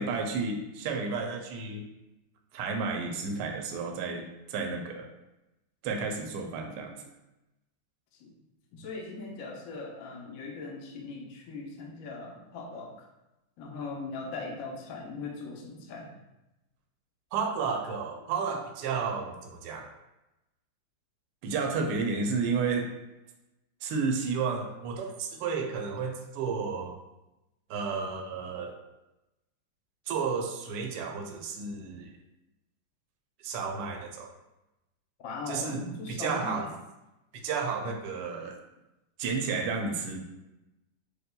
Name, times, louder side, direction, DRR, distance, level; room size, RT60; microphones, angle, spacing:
voice 1, 0.0-1.8 2.5-5.1 5.8-6.9 17.3-19.9 21.4-22.9 23.8-26.9 27.7-28.8 30.1-32.1 33.4-34.3 35.5-36.6 37.3-38.6 39.2-40.2, right 5 dB, 75° right, 3 dB, 1.0 m, -32 dB
voice 2, 8.7-13.1 13.6-16.1 17.9-18.0 35.2-36.7, left 3 dB, 75° left, -1 dB, 0.7 m, -39 dB
5.1 x 2.2 x 2.2 m, 0.95 s
omnidirectional pair, 2.1 m